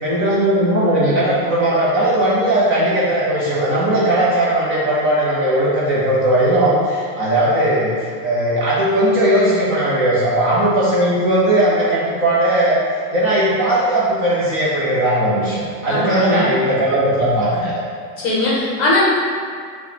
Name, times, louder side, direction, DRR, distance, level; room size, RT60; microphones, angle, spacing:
voice 1, 0.0-12.8 13.1-17.7, right 1 dB, 25° right, -8 dB, 0.7 m, -17 dB
voice 2, 15.9-16.4 18.2-19.1, left 2 dB, 30° left, -6 dB, 0.8 m, -19 dB
4.2 x 2.3 x 4.0 m, 2.1 s
supercardioid pair, 155°, 48 cm